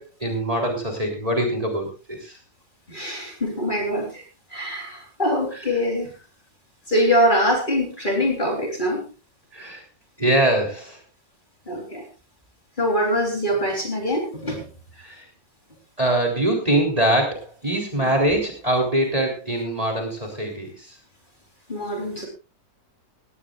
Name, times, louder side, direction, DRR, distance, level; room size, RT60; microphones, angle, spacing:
voice 1, 0.0-2.4 5.5-5.6 9.5-9.8 10.2-11.0 15.0-15.2 16.0-21.0, right 1 dB, 20° right, 1 dB, 3.7 m, -23 dB
voice 2, 2.9-4.2 4.5-6.1 6.9-9.1 11.7-12.0 12.8-14.6 18.0-18.1 21.7-22.3, equal, 25° left, 2 dB, 3.9 m, -23 dB
18.0 x 17.0 x 2.5 m, 0.29 s
omnidirectional pair, 1.8 m